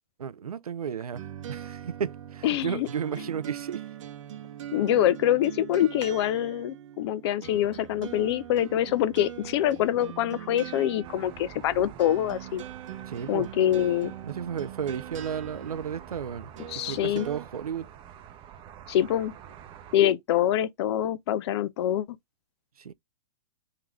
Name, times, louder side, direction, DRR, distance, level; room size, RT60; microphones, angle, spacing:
voice 1, 0.2-1.2 1.5-3.8 13.1-13.5 14.2-17.9 22.8-22.9, right 7 dB, 90° right, 0.4 m, -33 dB
sound 1, 1.1-17.4, right 10 dB, 60° right, 0.8 m, -42 dB
voice 2, 2.4-2.9 4.7-12.6 13.3-14.1 16.7-17.3 18.9-19.3 19.9-22.1, left 11 dB, 50° left, 0.5 m, -25 dB
sound 2, 11.0-20.0, right 9 dB, 30° right, 0.7 m, -47 dB
3.8 x 2.8 x 3.2 m
hypercardioid pair, 120°, 18 cm